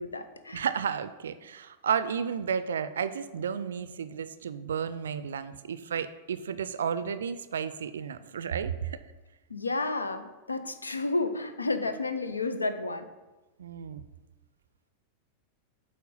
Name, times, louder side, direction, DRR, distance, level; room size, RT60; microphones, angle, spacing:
voice 1, 0.0-0.7 9.5-13.1, left 3 dB, 80° left, 10 dB, 0.6 m, -31 dB
voice 2, 0.5-9.0 13.6-14.0, right 7 dB, 65° right, 13 dB, 0.4 m, -32 dB
8.3 x 4.3 x 5.5 m, 1.1 s
figure-of-eight pair, 90°, 0 cm